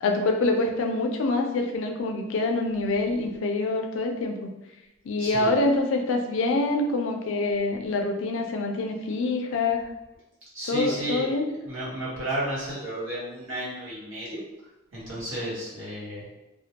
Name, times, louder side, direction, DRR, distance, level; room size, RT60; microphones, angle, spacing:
voice 1, 0.0-4.5 5.1-9.8 10.7-11.4, left 2 dB, 70° left, 3 dB, 0.4 m, -25 dB
voice 2, 5.2-5.5 10.5-11.3 11.6-14.4 14.9-16.3, right 1 dB, 85° right, -7 dB, 1.1 m, -32 dB
2.1 x 2.1 x 2.8 m, 0.99 s
head